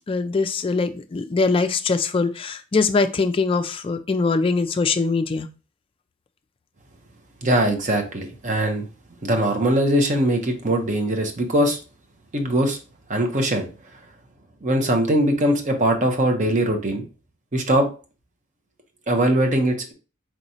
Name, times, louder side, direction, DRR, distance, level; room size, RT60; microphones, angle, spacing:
voice 1, 0.1-5.5, left 4 dB, 25° left, 9 dB, 0.3 m, -22 dB
voice 2, 7.4-8.9 9.2-11.8 12.3-12.8 13.1-13.7 14.6-17.0 17.5-17.9 19.1-19.9, right 1 dB, 35° right, 4 dB, 0.7 m, -21 dB
4.5 x 3.0 x 2.6 m, 0.33 s
head